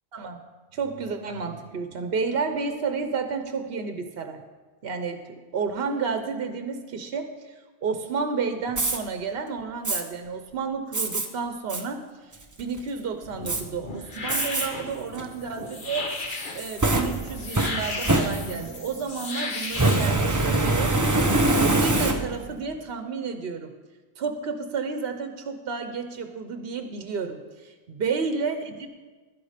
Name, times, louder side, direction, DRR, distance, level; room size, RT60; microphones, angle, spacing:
voice 1, 0.7-4.4 4.8-5.2 5.5-7.5 7.8-12.0 12.6-16.0 16.5-21.0 21.6-23.7 24.2-28.9, right 5 dB, 70° right, 7 dB, 1.0 m, -31 dB
Fire, 8.7-9.0 9.8-10.0 10.9-11.3 11.7-11.8 12.3-12.8 13.5-13.6 14.3-14.7 15.1-15.2 16.3-18.8 19.7-22.5, right 2 dB, 20° right, 0.6 m, -24 dB
sound 1, 13.2-20.1, left 3 dB, 50° left, 1.3 m, -35 dB
11.5 x 10.5 x 5.0 m, 1.3 s
omnidirectional pair, 1.1 m